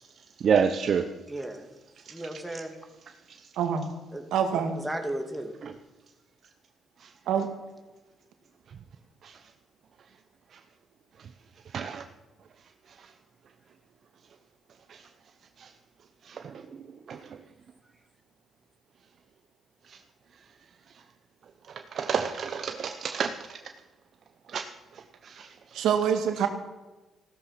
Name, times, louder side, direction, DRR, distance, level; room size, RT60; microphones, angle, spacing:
voice 1, 0.4-1.1 2.0-2.2 3.3-3.5 5.6-5.7 7.0-7.1 8.7-8.8 9.2-9.4 10.5-10.6 11.2-11.3 11.7-12.0 12.9-13.1 14.9-15.1 15.6-15.7 16.2-17.4 19.8-20.0 20.9-21.0 21.7-23.6 24.5-25.8, right 6 dB, 55° right, 7 dB, 0.9 m, -31 dB
voice 2, 1.3-1.7 2.1-2.8 4.1-4.2 4.5-5.5, right 1 dB, 5° right, 4 dB, 2.4 m, -35 dB
voice 3, 3.6-3.9 4.3-4.7 7.3-7.5 25.7-26.5, right 8 dB, 85° right, 5 dB, 2.0 m, -25 dB
15.5 x 13.0 x 5.9 m, 1.1 s
cardioid pair, 90°, 0 cm